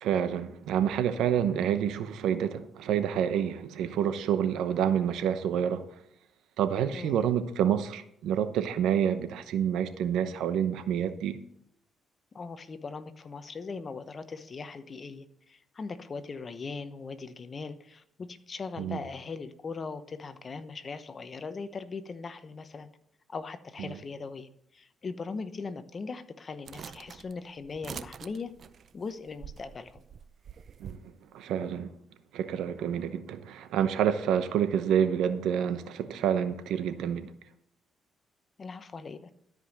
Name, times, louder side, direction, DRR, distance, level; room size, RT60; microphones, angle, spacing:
voice 1, 0.0-5.9 6.6-11.4 18.8-19.0 23.8-24.0 30.8-31.9 32.3-37.3, right 9 dB, 85° right, 0.8 m, -28 dB
voice 2, 6.9-7.2 12.3-22.9 23.3-28.5 28.9-30.0 38.6-39.3, left 4 dB, 40° left, 0.9 m, -40 dB
sound 1, 26.7-31.0, right 7 dB, 55° right, 0.5 m, -45 dB
12.5 x 5.3 x 6.5 m
cardioid pair, 90°, 0 cm